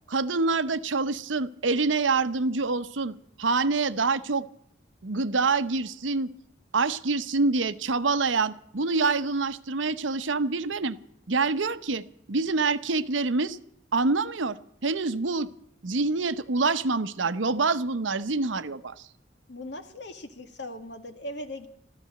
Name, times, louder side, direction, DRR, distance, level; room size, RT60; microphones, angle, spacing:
voice 1, 0.1-4.5 5.0-6.3 6.7-11.0 11.3-13.6 13.9-15.5 15.8-19.1, right 3 dB, 85° right, 13 dB, 0.8 m, -26 dB
voice 2, 19.5-21.7, left 1 dB, 65° left, 7 dB, 1.9 m, -39 dB
14.0 x 13.5 x 7.6 m, 0.71 s
head